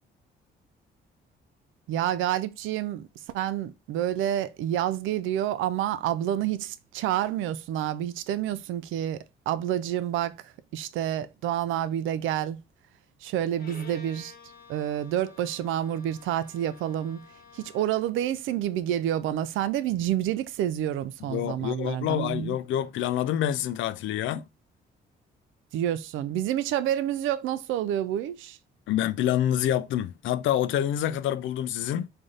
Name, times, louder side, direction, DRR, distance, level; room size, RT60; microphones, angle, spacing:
voice 1, 1.9-3.1 3.3-10.4 10.7-12.6 13.2-14.3 14.7-17.2 17.5-22.6 25.7-28.6, right 11 dB, 85° right, 0.4 m, -28 dB
Bowed string instrument, 13.6-18.1, left 5 dB, 50° left, 1.0 m, -51 dB
voice 2, 21.3-24.5 28.9-32.1, left 11 dB, 75° left, 0.4 m, -27 dB
3.3 x 2.7 x 3.8 m
cardioid pair, 90°, 20 cm